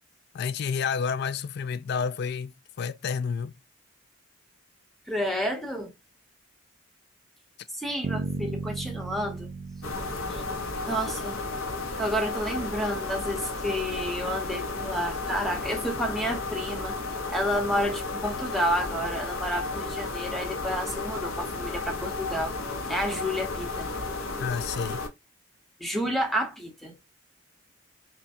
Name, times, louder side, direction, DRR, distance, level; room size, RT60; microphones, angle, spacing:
voice 1, 0.3-3.5 24.4-25.0, left 6 dB, 50° left, 0.3 m, -30 dB
voice 2, 5.1-5.9 7.7-9.5 10.3-10.4 10.9-11.4 12.0-17.0 17.3-22.5 22.9-23.9 25.8-26.9, equal, ahead, 0.9 m, -30 dB
Bass guitar, 8.0-12.0, right 3 dB, 35° right, 0.4 m, -36 dB
sound 1, 9.8-25.1, left 3 dB, 80° left, 0.9 m, -33 dB
5.6 x 2.2 x 2.6 m
head